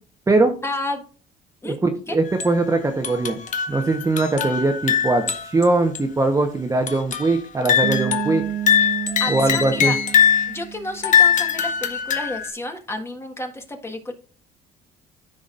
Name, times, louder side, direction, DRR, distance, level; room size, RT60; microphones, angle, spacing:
voice 1, 0.6-1.0 1.6-1.8 2.1-2.2 8.8-8.9 9.2-10.0 10.5-14.1, left 2 dB, 15° left, 4 dB, 1.5 m, -31 dB
voice 2, 1.6-3.4 3.7-8.4 9.3-9.9, right 2 dB, 20° right, 4 dB, 1.0 m, -21 dB
sound 1, 2.3-2.6 3.0-5.7 5.9-6.0 6.9-7.4 7.7-10.6 11.0-12.5, left 8 dB, 50° left, 1.1 m, -21 dB
Bass guitar, 7.8-11.5, right 11 dB, 65° right, 0.7 m, -30 dB
14.0 x 5.1 x 2.5 m, 0.40 s
cardioid pair, 110°, 17 cm